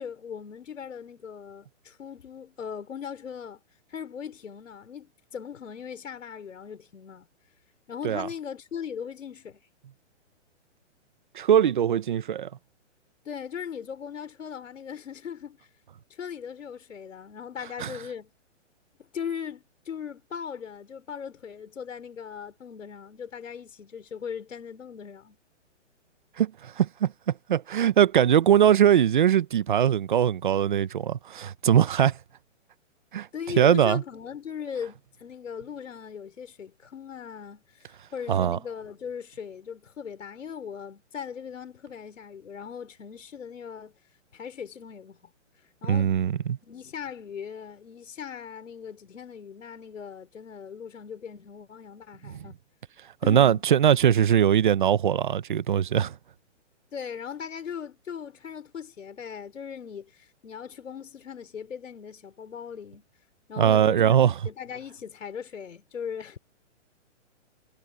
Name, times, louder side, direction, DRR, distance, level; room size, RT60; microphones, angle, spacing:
voice 1, 0.0-3.6 3.9-7.3 7.9-9.6 13.2-15.6 16.1-18.3 19.0-25.4 33.3-44.0 44.3-45.3 45.8-46.2 46.6-52.6 53.2-53.6 56.9-63.0 63.5-66.4, left 7 dB, 90° left, 5.0 m, -39 dB
voice 2, 11.3-12.5 17.8-17.9 26.4-32.1 33.1-33.3 33.6-34.0 38.3-38.6 45.9-46.6 52.2-52.3 53.3-56.2 63.6-64.4, right 9 dB, 40° right, 0.8 m, -21 dB
hypercardioid pair, 175°, 37 cm